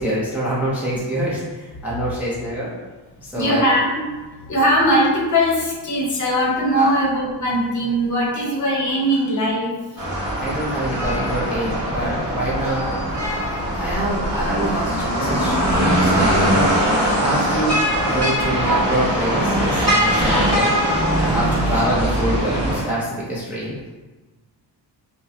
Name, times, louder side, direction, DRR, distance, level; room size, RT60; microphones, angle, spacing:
voice 1, 0.0-2.7 3.2-3.7 6.8-6.9 10.4-13.0 13.7-16.7 17.2-20.8 21.2-23.8, right 1 dB, 5° right, -7 dB, 0.4 m, -25 dB
voice 2, 3.3-4.0 4.5-10.0 20.4-20.5, equal, 40° left, -3 dB, 0.8 m, -20 dB
sound 1, 10.0-22.8, equal, 35° right, 1.5 m, -21 dB
5.1 x 2.1 x 2.5 m, 1.2 s
wide cardioid pair, 170°, 44 cm